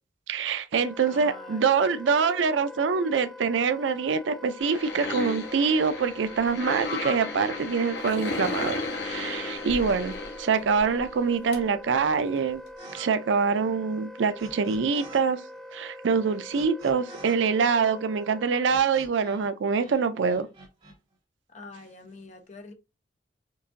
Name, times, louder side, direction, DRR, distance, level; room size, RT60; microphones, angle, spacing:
voice 1, 0.3-8.8 9.0-12.6 12.9-15.4 15.7-20.5, right 5 dB, 85° right, 0.4 m, -25 dB
Wind instrument woodwind instrument, 0.7-18.9, left 1 dB, ahead, 0.4 m, -44 dB
voice 2, 1.1-1.8 21.5-22.7, left 3 dB, 40° left, 0.8 m, -45 dB
sound 1, 4.6-11.1 11.5-11.6 11.9-12.0 12.4-12.5 12.7-12.8, left 3 dB, 65° left, 1.0 m, -34 dB
sound 2, 12.8-13.1 13.3-15.2 15.5-19.5 19.7-20.9, right 3 dB, 35° right, 1.8 m, -48 dB
4.7 x 2.5 x 2.5 m
head